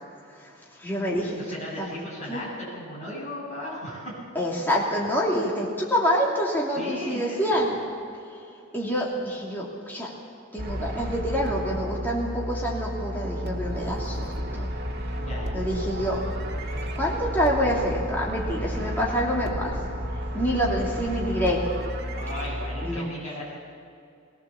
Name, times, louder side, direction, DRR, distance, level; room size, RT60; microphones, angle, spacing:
voice 1, 0.8-1.4 1.8-2.0 2.3-2.4 4.3-7.8 8.7-10.1 10.5-14.7 15.5-16.3 17.0-19.8 20.3-21.7 22.8-23.1, equal, 10° left, -4 dB, 2.8 m, -27 dB
voice 2, 1.4-4.1 6.7-7.5 15.2-15.6 22.1-23.6, left 1 dB, 35° left, -5 dB, 7.6 m, -36 dB
sound 1, 10.6-23.0, equal, 50° right, 2.1 m, -32 dB
20.5 x 18.5 x 7.2 m, 2.4 s
head